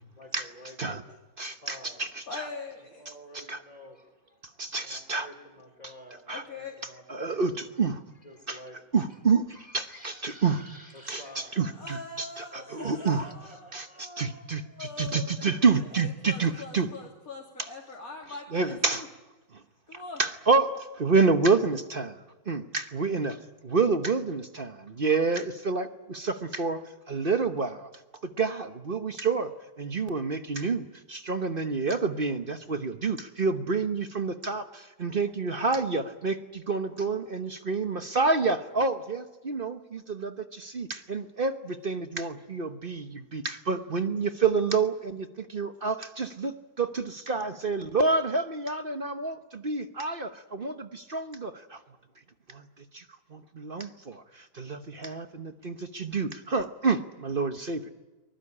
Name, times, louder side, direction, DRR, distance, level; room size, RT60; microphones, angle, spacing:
voice 1, 0.2-1.1 1.4-2.0 2.8-7.6 8.2-8.8 9.1-9.2 9.5-11.6 12.5-14.0, equal, 20° left, 4 dB, 4.5 m, -50 dB
voice 2, 1.4-2.5 3.3-3.6 4.6-5.3 6.3-6.4 7.1-8.0 8.5-8.6 8.9-10.6 11.1-11.2 11.6-13.2 13.7-16.9 17.6-17.7 18.5-19.1 19.9-22.2 22.5-23.4 23.6-26.8 27.1-27.9 28.2-51.8 52.5-53.0 53.3-57.8, right 4 dB, 35° right, 9 dB, 1.0 m, -28 dB
voice 3, 2.3-3.0 6.3-6.8 11.7-15.5 15.9-19.1 19.9-20.2, left 3 dB, 45° left, -2 dB, 3.2 m, -42 dB
23.5 x 20.5 x 9.9 m, 1.1 s
omnidirectional pair, 2.1 m